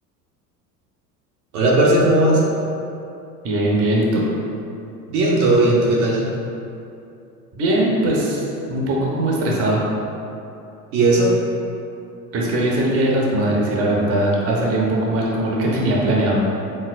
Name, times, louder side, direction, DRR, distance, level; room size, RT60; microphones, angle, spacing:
voice 1, 1.5-2.4 5.1-6.2 10.9-11.3, right 2 dB, 60° right, -4 dB, 0.9 m, -16 dB
voice 2, 3.4-4.2 7.6-9.8 12.3-16.4, right 1 dB, 30° right, -3 dB, 0.8 m, -20 dB
4.4 x 3.7 x 2.5 m, 2.7 s
hypercardioid pair, 75°, 49 cm